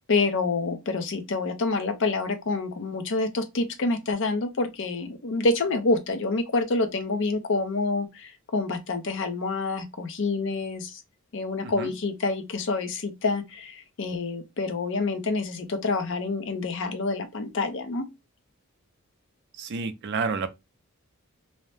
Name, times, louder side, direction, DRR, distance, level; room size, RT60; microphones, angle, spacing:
voice 1, 0.1-11.0 11.3-18.0, left 3 dB, 55° left, 0.5 m, -27 dB
voice 2, 19.6-20.5, right 4 dB, 50° right, 0.4 m, -29 dB
2.7 x 2.0 x 3.1 m
head